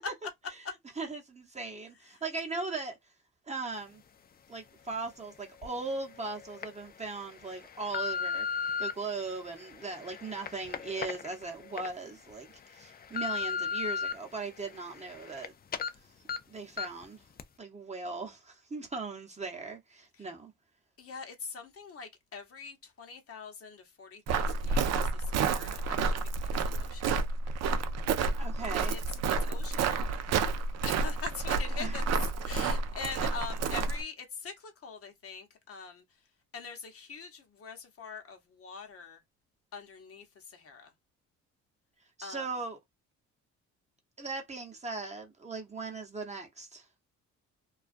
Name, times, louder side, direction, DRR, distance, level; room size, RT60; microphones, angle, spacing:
voice 1, 1.0-3.0 3.5-4.0 4.5-8.5 8.8-15.5 16.5-17.2 17.6-20.5 28.4-29.0 31.7-32.0 42.2-42.8 44.2-46.8, right 3 dB, 20° right, 0.8 m, -38 dB
sound 1, 5.6-5.7 6.3-6.7 7.3-8.9 9.6-11.9 12.3-12.4 12.8-14.1 14.6-15.5 15.7-15.9 16.3-16.4 16.8-17.0 17.4-17.5, left 6 dB, 30° left, 0.4 m, -35 dB
voice 2, 21.0-27.1 28.8-29.0 29.4-30.3 30.8-32.0 32.4-36.0 36.5-39.2 39.7-40.9 42.2-42.5, left 5 dB, 50° left, 0.8 m, -44 dB
Walk footsteps, 24.3-34.0, right 4 dB, 60° right, 0.5 m, -30 dB
2.4 x 2.2 x 2.4 m
cardioid pair, 90°, 30 cm